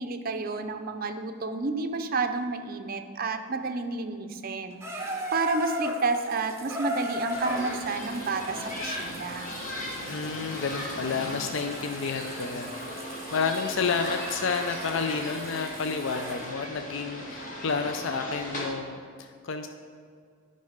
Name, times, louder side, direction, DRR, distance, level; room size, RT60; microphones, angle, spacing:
voice 1, 0.0-9.5, right 3 dB, 40° right, 7 dB, 0.5 m, -30 dB
Water tap faucet / Bathtub (filling or washing), 4.8-16.5 17.4-17.5, left 1 dB, 10° right, 0.8 m, -38 dB
sound 1, 7.3-18.7, left 1 dB, 35° left, 1.2 m, -37 dB
voice 2, 10.0-12.7 13.3-19.7, left 5 dB, 60° left, 6 dB, 0.4 m, -30 dB
9.6 x 5.4 x 5.1 m, 2.2 s
head